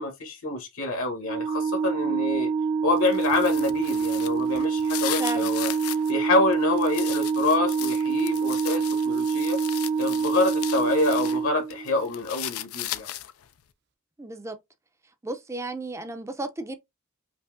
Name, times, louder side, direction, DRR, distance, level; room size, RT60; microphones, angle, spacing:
voice 1, 0.0-2.5 2.8-5.7 6.1-9.6 10.0-13.1, left 2 dB, 65° left, 1.2 m, -27 dB
Organ, 1.2-12.1, right 5 dB, 55° right, 0.7 m, -26 dB
sound 1, 3.0-6.1 6.5-11.4 11.7-13.5, left 14 dB, 85° left, 0.5 m, -37 dB
voice 2, 5.2-5.5 14.2-14.6 15.2-16.8, right 2 dB, 15° right, 0.5 m, -33 dB
5.3 x 2.7 x 2.6 m
head